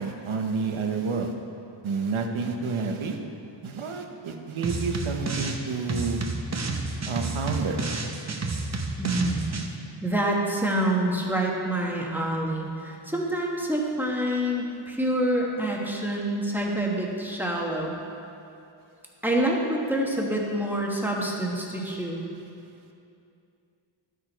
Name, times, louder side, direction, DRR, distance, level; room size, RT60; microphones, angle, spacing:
voice 1, 0.0-1.3 1.8-3.2 3.6-6.2 7.1-7.8, right 4 dB, 85° right, 4 dB, 0.9 m, -29 dB
sound 1, 4.6-5.6 5.9-9.7, right 3 dB, 35° right, 0.8 m, -30 dB
voice 2, 9.0-9.5 10.0-17.9 19.2-22.2, right 1 dB, 5° right, -2 dB, 1.2 m, -27 dB
12.0 x 6.6 x 4.5 m, 2.6 s
wide cardioid pair, 115°, 47 cm